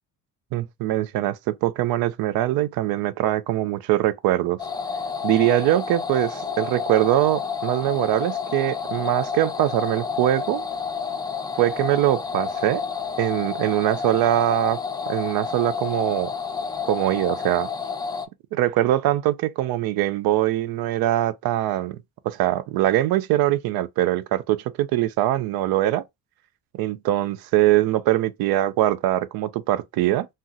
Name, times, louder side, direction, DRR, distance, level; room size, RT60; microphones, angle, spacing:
voice 1, 0.5-4.6 5.2-10.6 11.6-12.8 13.2-14.8 15.1-16.3 16.8-17.7 18.5-22.0 22.2-26.0 26.7-30.3, right 14 dB, 85° right, 0.5 m, -22 dB
sound 1, 4.6-18.3, left 6 dB, 10° left, 0.3 m, -30 dB
2.7 x 2.1 x 3.6 m
cardioid pair, 110°, 35 cm